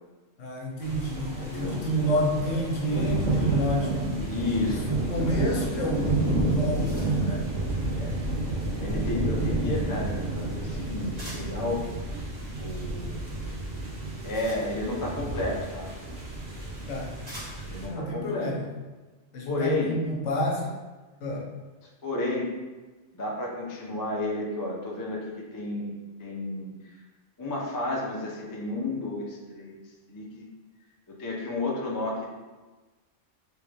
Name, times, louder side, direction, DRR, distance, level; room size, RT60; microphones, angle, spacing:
voice 1, 0.4-4.8 5.1-7.4 16.9-17.1 17.9-18.6 19.3-20.7 21.2-21.5, equal, 75° left, -2 dB, 1.1 m, -29 dB
sound 1, 0.8-17.9, right 2 dB, 70° right, 1.2 m, -30 dB
voice 2, 1.4-1.8 4.3-4.9 7.9-8.1 8.8-11.9 12.6-13.3 14.2-15.9 17.6-18.5 19.5-19.9 22.0-22.5 23.1-25.9 26.2-26.7 27.4-29.8 30.1-30.5 31.1-32.3, left 2 dB, 30° left, -2 dB, 0.4 m, -32 dB
sound 2, 6.5-7.4 11.2-11.6 13.9-15.1 16.2-16.3 17.2-17.8, equal, 35° right, 1.3 m, -45 dB
3.3 x 3.2 x 3.3 m, 1.2 s
omnidirectional pair, 1.3 m